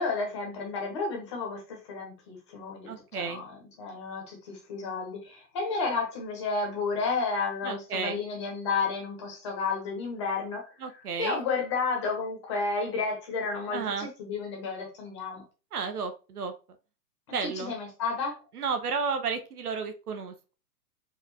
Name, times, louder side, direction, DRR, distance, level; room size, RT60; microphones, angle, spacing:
voice 1, 0.0-10.7 11.2-15.4 17.4-18.4, left 4 dB, 20° left, 0 dB, 1.0 m, -32 dB
voice 2, 2.9-3.4 7.6-8.2 10.8-11.4 13.7-14.1 15.7-16.5 17.3-17.7 18.5-20.5, right 5 dB, 70° right, 7 dB, 1.0 m, -32 dB
4.8 x 2.4 x 4.1 m, 0.32 s
hypercardioid pair, 175°, 48 cm